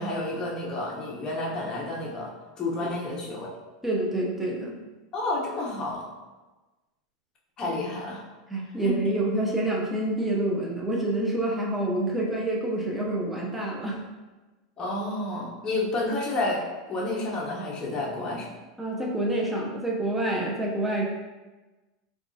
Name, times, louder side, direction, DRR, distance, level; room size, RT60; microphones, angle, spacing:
voice 1, 0.0-3.5 5.1-6.1 7.6-8.2 8.8-9.0 14.8-18.5, left 2 dB, 25° left, -4 dB, 0.8 m, -30 dB
voice 2, 3.8-4.8 8.5-14.0 18.8-21.1, right 1 dB, 5° right, -3 dB, 0.6 m, -27 dB
4.1 x 2.4 x 2.7 m, 1.2 s
hypercardioid pair, 115°, 3 cm